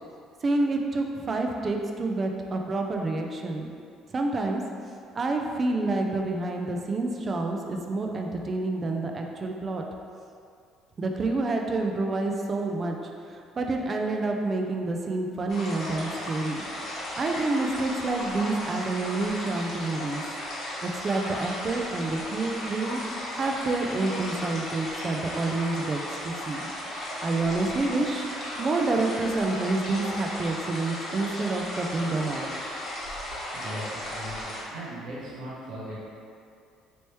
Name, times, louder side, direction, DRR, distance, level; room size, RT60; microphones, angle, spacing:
voice 1, 0.4-3.7 4.1-4.6 5.1-9.8 11.0-13.0 13.3-16.6 17.2-20.2 20.8-23.0 23.3-26.6 27.2-28.3 28.6-32.5, right 2 dB, 35° right, 2 dB, 0.4 m, -28 dB
sound 1, 15.5-34.6, left 1 dB, 55° left, 1.0 m, -35 dB
voice 2, 33.5-36.1, right 1 dB, 70° right, -8 dB, 0.9 m, -38 dB
3.1 x 3.1 x 3.0 m, 2.4 s
supercardioid pair, 85°, 0 cm